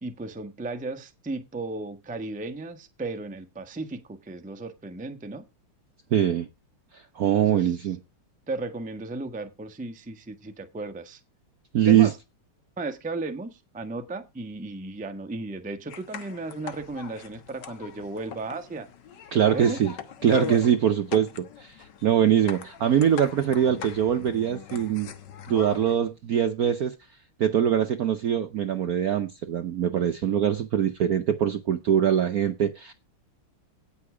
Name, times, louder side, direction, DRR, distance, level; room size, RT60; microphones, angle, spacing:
voice 1, 0.0-5.4 7.3-7.8 8.5-11.2 11.9-12.2 12.8-18.9 19.3-19.8, right 2 dB, 5° right, 0.6 m, -35 dB
voice 2, 6.1-6.5 6.9-8.0 11.7-12.1 19.3-19.9 20.2-21.8 22.0-25.1 25.5-26.9 27.4-32.9, right 9 dB, 65° right, 0.9 m, -23 dB
sound 1, 15.9-26.0, left 8 dB, 60° left, 1.6 m, -40 dB
17.0 x 5.7 x 4.9 m
omnidirectional pair, 2.4 m